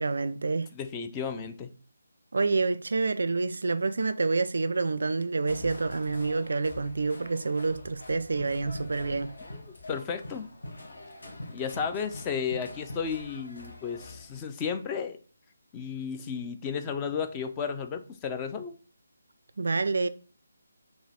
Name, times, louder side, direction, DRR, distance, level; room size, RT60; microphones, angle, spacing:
voice 1, 0.0-0.7 2.3-9.3 19.6-20.1, right 3 dB, 60° right, 0.3 m, -28 dB
voice 2, 0.7-1.7 9.4-9.6 9.9-10.5 11.5-15.2 15.7-18.7, left 6 dB, 15° left, 0.4 m, -33 dB
sound 1, 5.5-14.4, left 2 dB, 55° left, 1.1 m, -44 dB
4.8 x 2.7 x 4.1 m
figure-of-eight pair, 150°, 0 cm